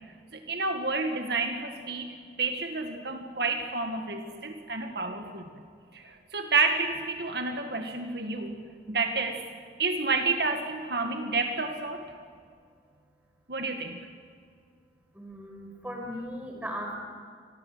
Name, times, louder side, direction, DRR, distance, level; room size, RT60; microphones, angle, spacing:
voice 1, 0.3-5.5 5.9-9.4 9.8-12.1 13.5-14.1, right 4 dB, 65° right, 5 dB, 2.1 m, -30 dB
voice 2, 15.1-16.9, equal, 10° right, 2 dB, 5.8 m, -37 dB
29.0 x 22.5 x 8.1 m, 2.2 s
head